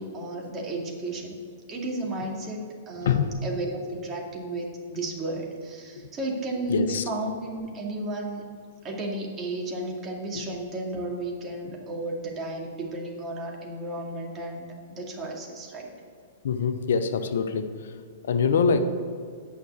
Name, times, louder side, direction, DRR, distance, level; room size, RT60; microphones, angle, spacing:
voice 1, 0.0-1.3 1.7-8.4 8.8-15.9, right 2 dB, 25° right, -1 dB, 2.3 m, -33 dB
voice 2, 6.7-7.0 10.3-10.4 16.4-17.7 18.3-18.8, left 6 dB, 70° left, 9 dB, 0.7 m, -24 dB
9.2 x 5.9 x 8.2 m, 2.1 s
hypercardioid pair, 110°, 0 cm